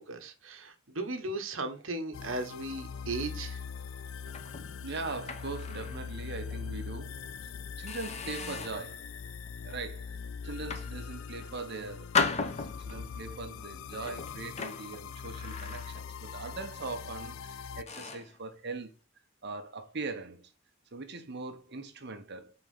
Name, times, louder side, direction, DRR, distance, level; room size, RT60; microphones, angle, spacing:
voice 1, 0.0-3.6, right 2 dB, 80° right, 1.3 m, -36 dB
sound 1, 2.1-17.8, left 6 dB, 85° left, 0.4 m, -42 dB
sound 2, 4.3-6.1 6.5-6.7 7.2-7.4 7.9-8.9 9.5-9.8 10.5-11.5 12.1-13.1 13.9-16.3 16.5-16.8 17.4-17.5 17.9-18.4, left 5 dB, 35° left, 0.8 m, -36 dB
voice 2, 4.8-7.2 7.4-7.5 7.8-9.1 9.6-10.2 10.4-18.9 19.4-20.5 20.9-22.5, right 3 dB, 55° right, 1.2 m, -41 dB
5.4 x 4.5 x 5.6 m
head